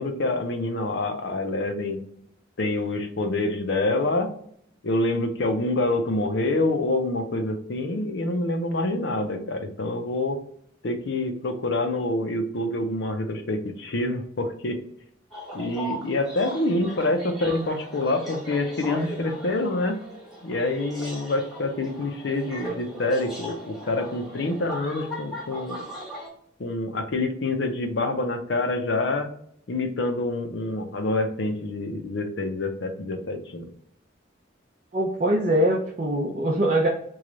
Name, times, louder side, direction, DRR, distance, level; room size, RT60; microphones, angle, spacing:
voice 1, 0.0-2.0 2.6-4.3 4.8-10.4 10.8-14.8 15.5-20.0 20.4-25.9 26.6-29.3 29.7-33.7, left 2 dB, 70° left, 6 dB, 0.5 m, -26 dB
sound 1, 15.3-26.3, right 1 dB, ahead, 1.0 m, -38 dB
voice 2, 34.9-36.9, right 1 dB, 40° right, -3 dB, 0.5 m, -22 dB
3.1 x 2.3 x 3.8 m, 0.67 s
head